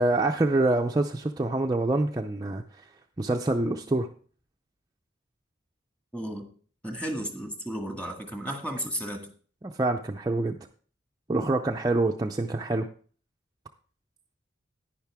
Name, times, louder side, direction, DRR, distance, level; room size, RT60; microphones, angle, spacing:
voice 1, 0.0-2.9 3.2-4.1 9.6-10.6 11.3-12.9, right 2 dB, 20° right, 3 dB, 0.5 m, -26 dB
voice 2, 6.1-6.4 6.8-9.3, equal, 5° left, 4 dB, 1.8 m, -33 dB
10.5 x 10.5 x 3.5 m, 0.43 s
head